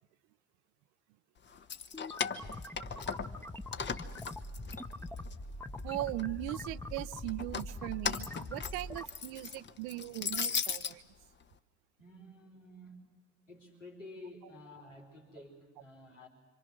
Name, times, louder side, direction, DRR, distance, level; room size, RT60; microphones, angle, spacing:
voice 1, 1.5-1.8 3.0-3.7 6.3-6.4 12.0-13.0 13.5-16.3, left 1 dB, 90° left, 1 dB, 3.9 m, -53 dB
Keys jangling, 1.5-3.4 3.7-5.3 5.8-6.5 7.3-10.9, left 6 dB, 30° left, 1.1 m, -37 dB
sound 1, 1.9-9.1, left 1 dB, 5° left, 1.0 m, -43 dB
voice 2, 5.8-11.0, right 17 dB, 55° right, 18 dB, 0.7 m, -39 dB
27.0 x 25.0 x 6.2 m, 1.3 s
figure-of-eight pair, 65°, 36 cm